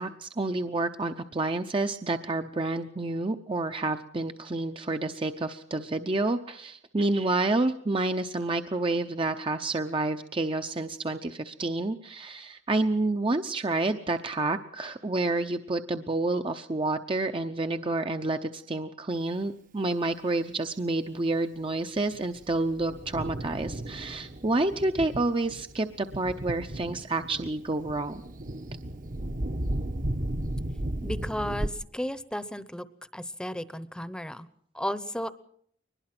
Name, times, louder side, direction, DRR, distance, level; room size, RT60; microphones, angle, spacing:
voice 1, 0.0-28.2, right 2 dB, 30° right, 7 dB, 0.7 m, -29 dB
Thunder, 22.0-31.7, right 1 dB, 45° right, 1.1 m, -35 dB
voice 2, 31.0-32.8 33.1-34.5 34.7-35.3, equal, 5° left, 15 dB, 0.9 m, -34 dB
22.5 x 20.5 x 6.0 m, 0.66 s
head